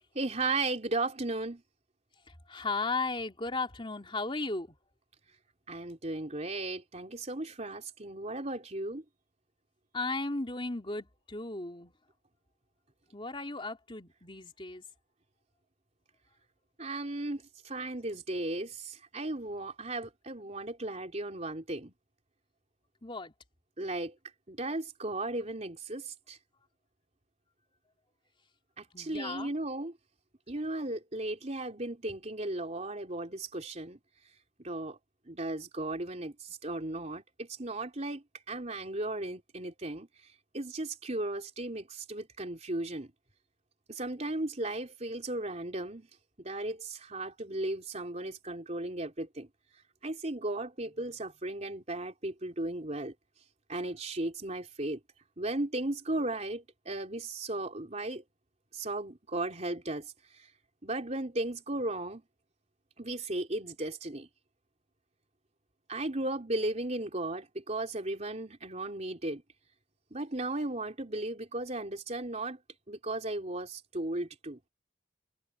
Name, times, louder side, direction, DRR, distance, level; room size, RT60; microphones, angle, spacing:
voice 1, 0.0-1.6 5.7-9.0 16.8-21.9 23.8-24.2 24.5-26.4 28.8-30.0 30.5-34.0 34.6-35.0 35.3-40.1 40.5-43.1 43.9-46.1 46.4-49.5 50.0-53.1 53.7-55.0 55.4-58.2 58.7-60.5 60.8-62.2 63.0-64.3 65.9-69.4 70.1-72.6 72.9-74.6, right 2 dB, 35° right, 3.7 m, -36 dB
voice 2, 2.5-4.7 9.9-11.9 13.1-14.8 23.0-23.3 28.9-29.5, left 3 dB, 30° left, 3.3 m, -35 dB
head